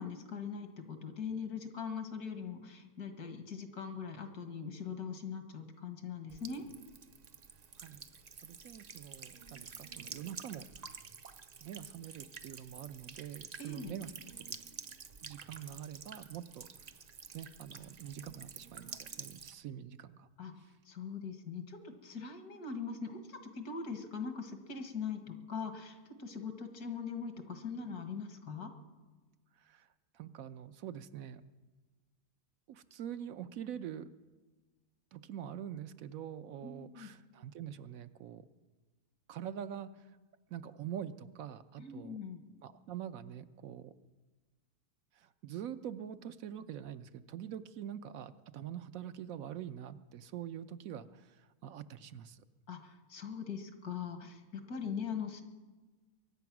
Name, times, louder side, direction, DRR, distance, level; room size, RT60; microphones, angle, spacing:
voice 1, 0.0-6.7 13.6-13.9 20.4-28.7 36.6-37.1 41.8-42.4 52.7-55.4, left 6 dB, 85° left, 7 dB, 2.1 m, -41 dB
Buzz / Water tap faucet / Trickle dribble, 6.3-19.5, right 5 dB, 45° right, 0.5 m, -49 dB
voice 2, 8.4-10.9 11.6-14.1 14.4-14.6 15.2-16.7 17.3-20.3 29.6-29.9 30.1-31.4 32.7-34.1 35.1-38.4 39.3-39.9 40.5-42.2 42.6-43.9 45.2-52.4, right 9 dB, 70° right, 11 dB, 1.0 m, -45 dB
23.0 x 9.4 x 6.0 m, 1.3 s
omnidirectional pair, 1.6 m